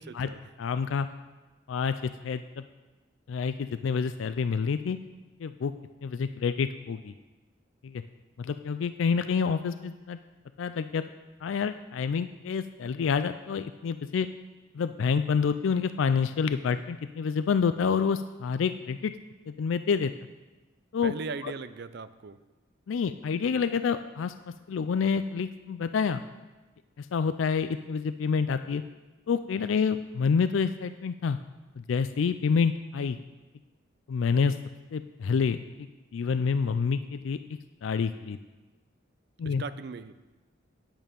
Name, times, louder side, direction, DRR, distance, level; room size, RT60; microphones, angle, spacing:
voice 1, 0.1-0.5 21.0-22.4 39.4-40.1, right 4 dB, 55° right, 13 dB, 0.5 m, -39 dB
voice 2, 0.6-1.1 1.7-2.6 3.3-5.0 5.4-5.7 6.0-7.1 7.8-8.0 8.4-10.2 10.6-11.0 11.4-14.3 14.7-19.1 19.5-20.1 20.9-21.1 21.4-21.5 22.9-24.3 24.7-26.2 27.0-28.8 29.3-31.4 31.8-33.2 34.1-34.6 34.9-37.4 37.8-38.4 39.4-39.6, left 5 dB, 75° left, 11 dB, 0.4 m, -28 dB
8.9 x 8.9 x 5.2 m, 1.2 s
head